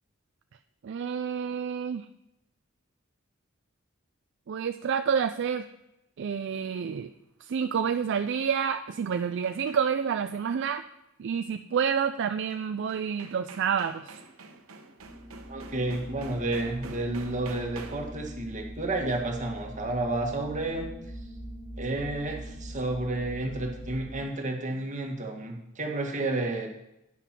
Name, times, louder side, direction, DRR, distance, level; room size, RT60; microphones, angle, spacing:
voice 1, 0.8-2.1 4.5-5.7 6.2-7.1 7.4-10.8 11.2-14.2, right 7 dB, 60° right, 8 dB, 0.4 m, -29 dB
sound 1, 8.4-10.1 12.5-12.6 12.9-18.2, right 3 dB, 85° right, 1.0 m, -48 dB
sound 2, 15.0-24.2, equal, 5° left, 2.0 m, -42 dB
voice 2, 15.5-20.9 21.8-26.7, right 2 dB, 35° right, 1 dB, 1.7 m, -31 dB
9.9 x 5.9 x 6.0 m, 0.87 s
head